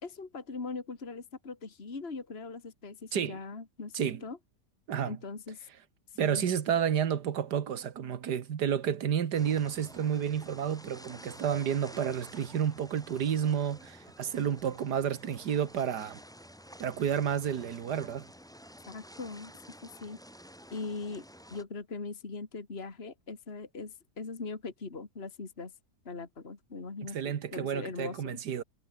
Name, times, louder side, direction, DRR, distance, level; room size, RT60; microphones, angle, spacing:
voice 1, 0.0-4.4 5.1-5.7 6.2-6.5 18.9-19.5 19.8-20.2 20.7-21.2 21.5-25.7 26.0-28.4, left 4 dB, 40° left, 2.5 m, -40 dB
voice 2, 6.2-16.2 16.8-18.3 27.0-28.6, right 8 dB, 85° right, 1.9 m, -30 dB
sound 1, 9.3-21.6, equal, ahead, 6.3 m, -51 dB
omnidirectional pair, 1.7 m